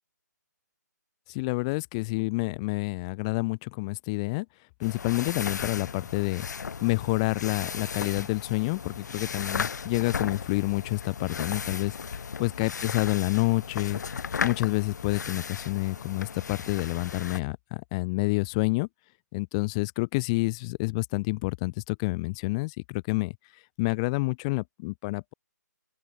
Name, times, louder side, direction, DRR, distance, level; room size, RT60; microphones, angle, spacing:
voice 1, 1.3-4.5 4.8-6.5 6.8-11.9 12.4-14.0 14.4-18.9 19.3-23.4 23.8-25.3, left 26 dB, 20° left, 0.5 m, -28 dB
sound 1, 4.8-17.4, left 6 dB, 70° left, 0.5 m, -36 dB
open air
hypercardioid pair, 155°, 10 cm